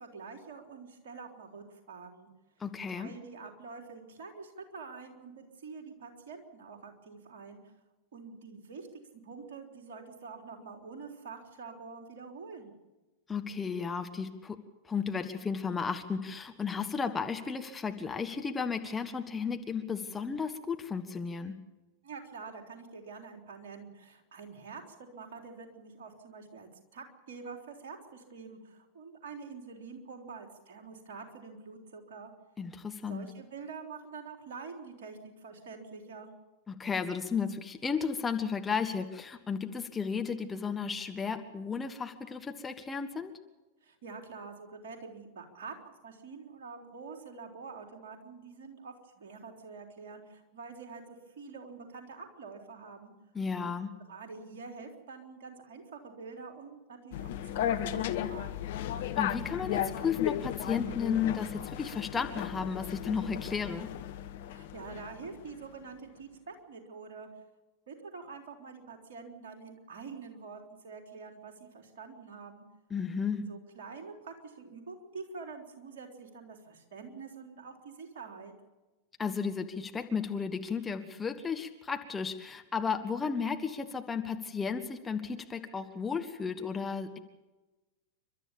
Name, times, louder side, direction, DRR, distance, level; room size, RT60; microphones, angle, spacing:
voice 1, 0.0-2.3 2.9-7.7 8.1-12.7 22.0-32.3 33.0-36.3 43.8-53.1 53.6-53.8 54.1-58.0 58.3-58.7 64.5-67.3 67.9-72.6 73.3-78.5, right 4 dB, 55° right, 3 dB, 3.7 m, -46 dB
voice 2, 2.6-3.1 13.3-14.6 14.8-21.5 32.6-33.3 36.7-43.3 53.3-53.9 59.2-63.9 72.9-73.4 79.2-87.2, left 6 dB, 15° left, 5 dB, 1.5 m, -34 dB
sound 1, 57.1-65.4, left 11 dB, 55° left, 1.2 m, -35 dB
30.0 x 12.5 x 7.1 m, 1.1 s
figure-of-eight pair, 90°, 0 cm